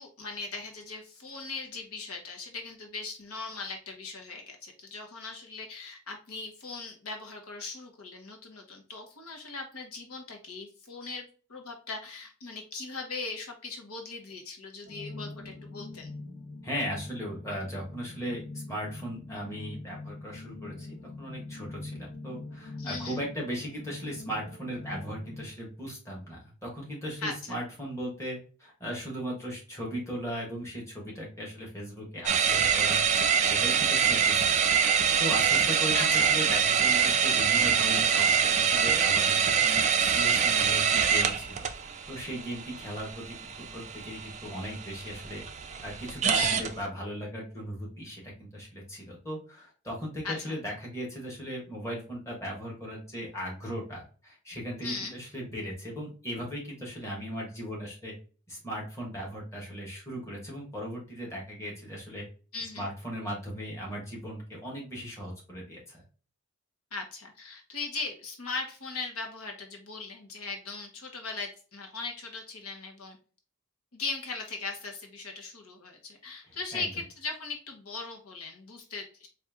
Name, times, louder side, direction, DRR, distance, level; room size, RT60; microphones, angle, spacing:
voice 1, 0.0-11.2 11.5-16.1 22.8-23.2 27.2-27.6 35.9-36.3 46.3-46.6 50.2-50.5 54.8-55.1 62.5-62.9 66.9-73.2 73.9-79.3, left 4 dB, 75° left, 3 dB, 1.0 m, -39 dB
sound 1, 14.8-25.4, left 3 dB, 45° left, 1.3 m, -43 dB
voice 2, 16.6-20.9 21.2-33.0 33.5-34.6 34.9-43.2 43.6-45.4 45.8-58.1 58.5-62.2 62.8-66.0 76.5-76.8, equal, 15° left, -3 dB, 1.3 m, -37 dB
sound 2, 32.3-46.7, right 7 dB, 30° right, 0.3 m, -25 dB
4.3 x 2.4 x 3.5 m, 0.38 s
head